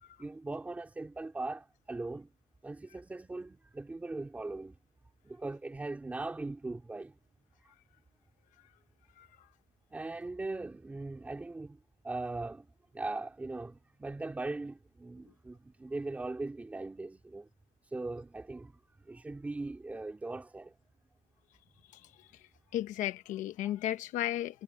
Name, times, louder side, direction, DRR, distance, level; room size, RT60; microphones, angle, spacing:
voice 1, 0.2-2.3 2.6-4.8 5.2-7.1 9.9-11.8 12.0-12.7 12.9-17.5 17.8-20.7 23.6-23.7, right 2 dB, 10° right, 3.4 m, -40 dB
voice 2, 21.9-22.4 22.7-24.6, left 13 dB, 65° left, 1.0 m, -35 dB
cardioid pair, 180°, 14 cm